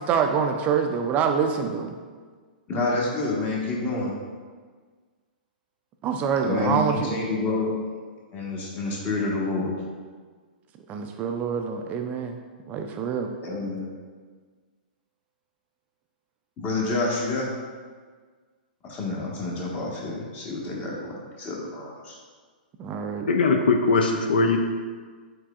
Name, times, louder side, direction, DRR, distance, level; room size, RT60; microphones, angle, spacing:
voice 1, 0.0-1.9 6.0-7.1 10.9-12.4 12.7-13.3 22.8-23.3, right 6 dB, 30° right, 5 dB, 0.3 m, -25 dB
voice 2, 2.7-4.1 6.4-7.7 8.3-9.7 13.4-13.9 16.6-17.5 18.8-22.2, left 2 dB, 30° left, -3 dB, 1.2 m, -28 dB
voice 3, 23.3-24.6, left 3 dB, 75° left, 4 dB, 0.4 m, -20 dB
4.7 x 4.6 x 2.4 m, 1.5 s
hypercardioid pair, 115°, 5 cm